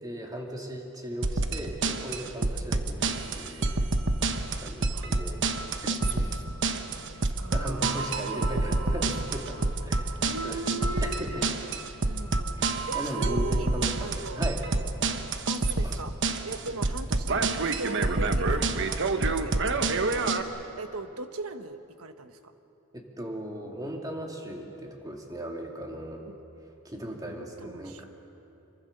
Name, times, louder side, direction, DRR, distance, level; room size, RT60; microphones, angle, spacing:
voice 1, 0.0-3.9 4.6-5.4 5.8-6.3 7.1-7.2 7.5-11.5 12.6-12.7 12.9-14.6 15.8-16.0 22.9-26.2 26.8-28.1, right 1 dB, 15° right, 1 dB, 2.7 m, -37 dB
sound 1, 1.2-20.4, right 3 dB, 55° right, 1.1 m, -28 dB
voice 2, 6.3-9.6 10.2-11.2 12.0-13.7 14.0-14.5 15.5-16.1 16.4-20.2 20.8-22.5 26.2-26.4 27.1-28.0, right 3 dB, 80° right, 8 dB, 1.3 m, -40 dB
26.5 x 23.0 x 6.8 m, 2.8 s
head